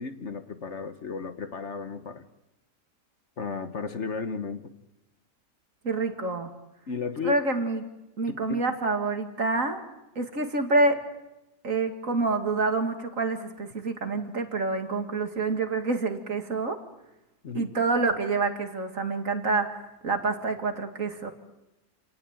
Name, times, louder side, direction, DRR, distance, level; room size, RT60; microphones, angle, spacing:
voice 1, 0.0-2.3 3.4-4.7 6.9-7.4 8.3-8.6 17.4-17.7, left 5 dB, 50° left, 10 dB, 1.3 m, -34 dB
voice 2, 5.8-6.5 7.2-7.9 8.2-9.8 10.2-11.0 11.6-16.8 17.5-19.8 20.0-21.3, right 3 dB, 55° right, 6 dB, 2.6 m, -27 dB
28.5 x 18.0 x 9.1 m, 0.96 s
omnidirectional pair, 1.7 m